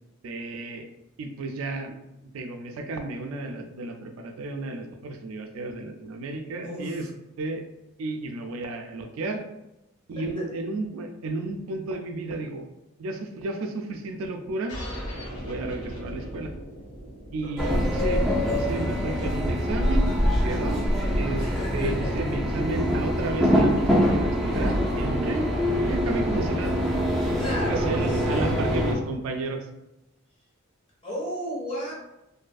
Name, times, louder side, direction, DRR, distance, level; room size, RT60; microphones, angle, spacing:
voice 1, 0.2-0.9 1.2-2.0 2.3-7.1 7.4-7.6 8.0-9.4 10.1-12.6 13.0-14.8 15.4-16.5 17.3-20.2 20.4-20.8 21.2-21.5 21.7-26.7 27.7-29.7, right 2 dB, 70° right, 5 dB, 0.3 m, -32 dB
voice 2, 6.6-7.1 10.3-10.5 17.4-17.8 21.4-22.3 27.4-28.6 31.0-31.9, equal, 25° left, -6 dB, 1.0 m, -34 dB
sound 1, 14.7-19.7, equal, 75° left, 1.3 m, -39 dB
sound 2, 17.6-28.9, equal, ahead, 0.5 m, -24 dB
2.6 x 2.4 x 2.3 m, 0.93 s
head